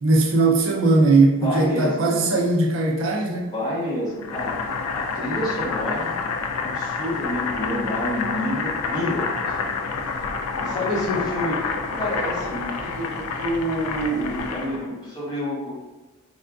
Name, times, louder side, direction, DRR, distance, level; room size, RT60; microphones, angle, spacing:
voice 1, 0.0-3.5, right 3 dB, 60° right, -2 dB, 0.4 m, -19 dB
voice 2, 1.4-2.3 3.4-4.6 4.9-6.2 6.6-9.8 10.5-15.8, equal, 20° left, -7 dB, 0.9 m, -28 dB
Boiling, 4.2-14.9, left 4 dB, 85° left, 0.4 m, -28 dB
3.5 x 2.4 x 2.3 m, 1.1 s
head